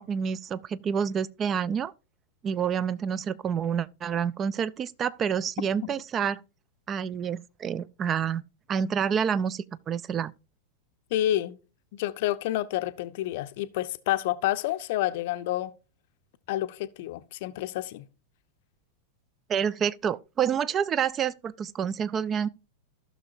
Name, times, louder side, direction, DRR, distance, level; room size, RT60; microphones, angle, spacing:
voice 1, 0.0-1.9 2.4-6.4 6.9-8.4 8.7-10.3 19.5-22.5, right 7 dB, 25° right, 0.4 m, -28 dB
voice 2, 11.1-11.6 11.9-15.7 16.5-18.1, left 14 dB, 50° left, 0.6 m, -29 dB
15.0 x 6.2 x 2.6 m
figure-of-eight pair, 90°, 0 cm